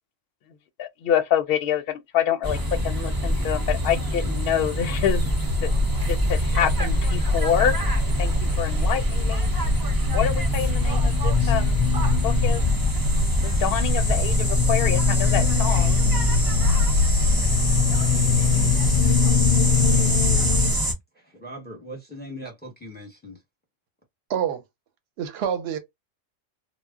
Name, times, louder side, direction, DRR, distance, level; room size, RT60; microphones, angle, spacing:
voice 1, 0.8-2.6 2.8-5.2 5.6-5.7 6.1-7.8 8.2-9.5 10.1-11.8 12.2-12.6 13.4-16.0, left 9 dB, 65° left, 0.7 m, -26 dB
sound 1, 2.4-20.9, equal, 25° right, 0.5 m, -25 dB
sound 2, 5.1-20.7, left 4 dB, 90° left, 0.9 m, -23 dB
voice 2, 21.2-23.4, equal, 10° left, 0.7 m, -40 dB
voice 3, 24.3-24.6 25.2-25.8, right 8 dB, 60° right, 0.8 m, -26 dB
2.1 x 2.0 x 3.5 m
omnidirectional pair, 1.3 m